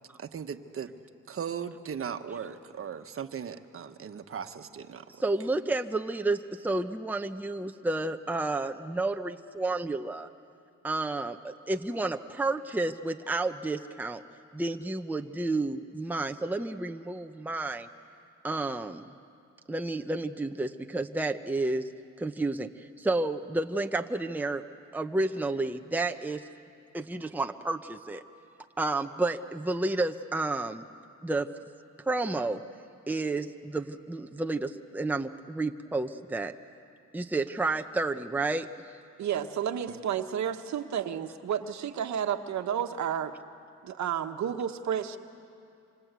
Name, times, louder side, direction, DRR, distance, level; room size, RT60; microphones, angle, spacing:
voice 1, 0.2-0.9 1.3-5.1, right 7 dB, 45° right, 8 dB, 1.3 m, -38 dB
voice 2, 5.2-10.3 10.8-14.2 14.5-17.9 18.4-19.1 19.7-21.9 22.2-24.6 24.9-26.4 26.9-28.2 28.8-30.9 31.2-31.5 32.0-32.6 33.1-36.5 37.1-38.7, right 2 dB, 5° right, 6 dB, 0.8 m, -31 dB
voice 3, 39.2-43.3 43.8-45.2, right 9 dB, 65° right, 7 dB, 1.3 m, -31 dB
27.0 x 26.0 x 8.3 m, 2.5 s
cardioid pair, 90°, 30 cm